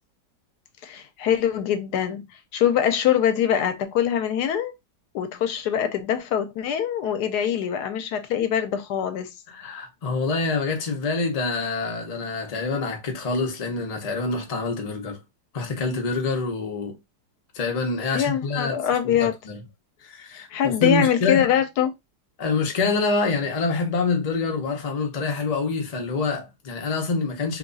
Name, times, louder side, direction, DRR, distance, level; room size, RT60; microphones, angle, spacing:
voice 1, 0.8-2.3 2.5-4.7 5.1-9.3 18.1-19.3 20.5-21.9, left 9 dB, 80° left, 1.1 m, -23 dB
voice 2, 9.5-15.2 15.5-17.0 17.5-18.8 19.0-19.6 20.0-21.5 22.4-27.6, left 3 dB, 35° left, 0.6 m, -26 dB
2.9 x 2.3 x 3.8 m
omnidirectional pair, 1.7 m